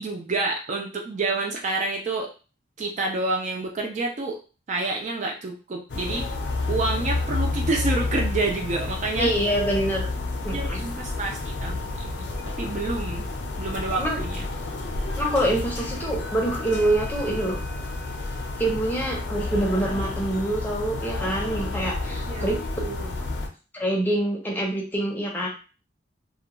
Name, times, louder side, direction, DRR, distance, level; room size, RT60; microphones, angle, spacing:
voice 1, 0.0-2.3 2.8-4.4 4.7-6.2 6.7-9.3 10.5-12.3 12.6-13.3 13.6-14.5 22.3-22.5 22.8-23.2, right 3 dB, 40° right, 2 dB, 0.3 m, -28 dB
sound 1, 5.9-23.5, left 2 dB, 65° left, 0.5 m, -30 dB
voice 2, 9.2-10.1 10.4-10.8 14.0-14.2 15.1-17.6 18.6-22.6 23.7-25.5, right 1 dB, 10° left, -2 dB, 0.6 m, -25 dB
2.4 x 2.2 x 2.9 m, 0.34 s
head